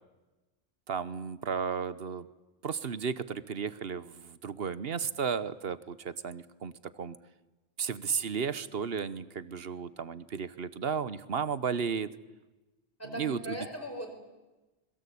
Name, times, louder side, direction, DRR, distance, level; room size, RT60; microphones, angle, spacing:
voice 1, 0.9-2.3 2.6-7.2 7.8-12.1 13.0-13.6, right 6 dB, 60° right, 16 dB, 1.2 m, -34 dB
voice 2, 13.0-14.1, equal, 10° left, 4 dB, 4.7 m, -39 dB
26.0 x 22.0 x 8.5 m, 1.1 s
omnidirectional pair, 1.2 m